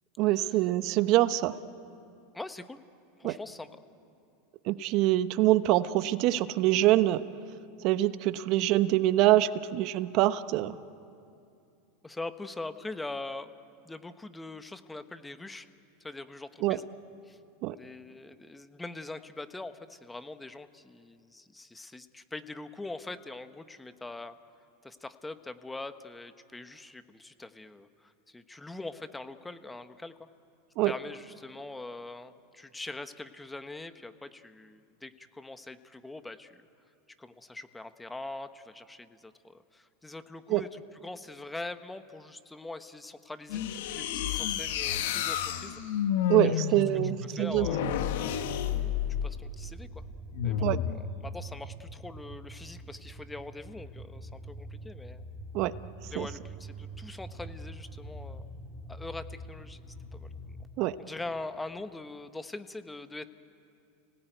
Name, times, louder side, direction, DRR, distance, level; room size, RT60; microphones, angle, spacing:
voice 1, 0.2-1.6 3.2-3.4 4.6-7.2 7.8-10.8 16.6-16.8 17.6-17.8 30.8-30.9 40.5-40.7 46.3-47.7 50.6-50.8 55.5-55.7 56.2-56.3 60.8-61.0, right 15 dB, 55° right, 14 dB, 0.9 m, -25 dB
voice 2, 2.3-2.8 3.2-3.7 12.0-13.5 13.8-15.7 16.0-16.9 17.2-17.4 17.7-24.4 24.8-30.2 30.8-36.6 37.2-45.8 46.5-46.8 47.3-47.9 49.2-50.0 50.4-50.9 51.2-55.2 56.1-58.5 58.9-59.8 60.1-60.3 61.0-63.2, left 2 dB, 10° left, 10 dB, 1.2 m, -42 dB
sound 1, 43.5-49.4 50.3-51.0, left 8 dB, 70° left, 1.5 m, -30 dB
sound 2, 49.1-60.7, right 1 dB, 10° right, 1.8 m, -45 dB
30.0 x 18.0 x 9.3 m, 2.5 s
hypercardioid pair, 100°, 0 cm